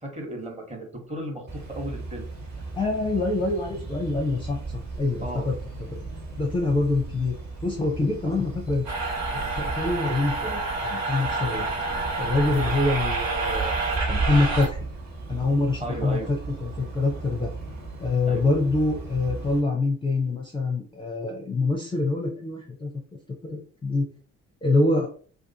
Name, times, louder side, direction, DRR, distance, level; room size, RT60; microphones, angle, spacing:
voice 1, 0.0-2.3 5.2-5.5 15.8-16.3 18.2-18.5, right 1 dB, 15° right, 0 dB, 1.0 m, -35 dB
sound 1, 1.5-19.6, right 3 dB, 45° right, 1.2 m, -35 dB
voice 2, 2.7-5.6 6.4-7.3 7.6-8.8 9.3-11.7 12.2-13.7 14.1-14.8 15.3-17.5 18.0-22.9 23.4-24.1 24.6-25.1, left 2 dB, 15° left, 0 dB, 0.5 m, -25 dB
sound 2, 8.9-14.7, right 3 dB, 65° right, 0.9 m, -29 dB
2.4 x 2.4 x 2.7 m, 0.43 s
figure-of-eight pair, 45°, 40 cm